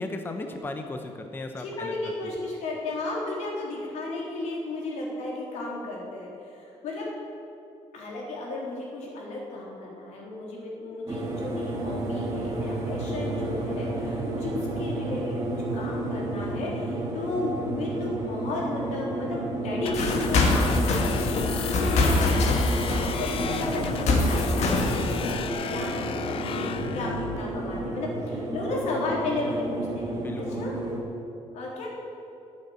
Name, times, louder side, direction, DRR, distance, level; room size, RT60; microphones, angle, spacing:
voice 1, 0.0-1.9 30.2-30.7, left 2 dB, 20° left, 5 dB, 0.8 m, -35 dB
voice 2, 1.6-7.1 7.9-30.0 30.4-30.8 31.5-31.9, left 2 dB, 90° left, -3 dB, 3.8 m, -34 dB
sound 1, 11.1-31.0, right 2 dB, 30° right, 2.4 m, -32 dB
sound 2, 19.8-27.4, left 7 dB, 55° left, 0.7 m, -34 dB
sound 3, 19.9-25.3, left 2 dB, 75° left, 2.1 m, -25 dB
13.0 x 8.4 x 9.5 m, 2.7 s
cardioid pair, 165°, 11 cm